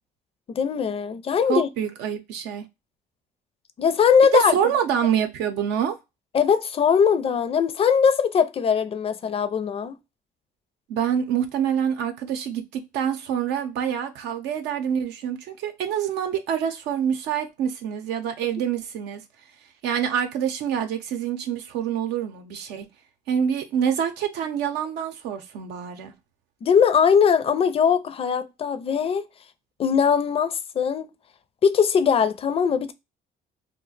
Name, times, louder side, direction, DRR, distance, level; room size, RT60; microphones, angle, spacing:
voice 1, 0.5-1.7 3.8-4.6 6.3-10.0 26.6-29.3 29.8-31.1 31.6-32.9, left 7 dB, 35° left, 0.4 m, -20 dB
voice 2, 1.5-2.6 4.3-6.0 10.9-19.2 19.8-22.9 23.3-26.1, right 8 dB, 85° right, 0.6 m, -26 dB
2.4 x 2.1 x 3.9 m
cardioid pair, 110°, 17 cm